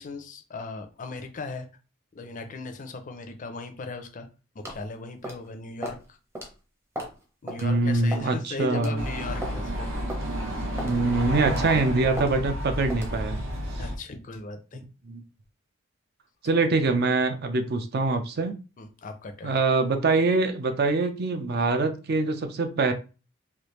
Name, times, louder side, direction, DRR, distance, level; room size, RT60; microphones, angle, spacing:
voice 1, 0.0-1.7 2.1-4.3 4.5-6.2 7.4-9.9 13.8-14.8 18.8-19.6, left 3 dB, 40° left, 7 dB, 0.4 m, -38 dB
sound 1, 4.6-4.8 5.2-5.5 5.8-6.0 6.3-6.5 6.9-7.2 7.5-7.6 8.1-8.3 8.7-8.9 9.4-9.6 10.1-10.2 10.8-11.0 11.4-11.7 12.2-12.3 12.9-13.1, equal, 15° right, 0.7 m, -35 dB
voice 2, 7.6-9.0 10.8-13.4 14.7-15.2 16.4-18.5 19.4-22.9, right 3 dB, 50° right, 7 dB, 0.5 m, -24 dB
sound 2, 9.0-14.0, equal, 70° right, 1.1 m, -31 dB
3.3 x 2.3 x 3.0 m, 0.33 s
head